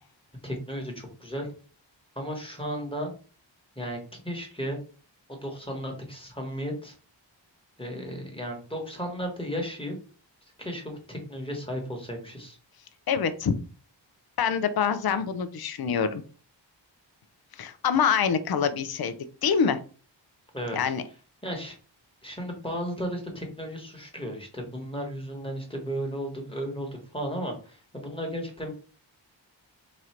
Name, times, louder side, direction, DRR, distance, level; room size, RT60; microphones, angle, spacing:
voice 1, 0.4-1.5 2.1-3.1 3.7-4.0 4.2-4.8 5.3-7.0 7.8-9.9 10.6-12.6 20.5-20.8 21.4-21.7 22.2-28.7, equal, 10° left, 1 dB, 1.2 m, -34 dB
voice 2, 13.1-13.5 14.4-16.2 17.6-19.1 19.4-19.8 20.7-21.0, left 7 dB, 55° left, 11 dB, 0.5 m, -25 dB
3.0 x 2.5 x 4.3 m, 0.38 s
wide cardioid pair, 75°, 45 cm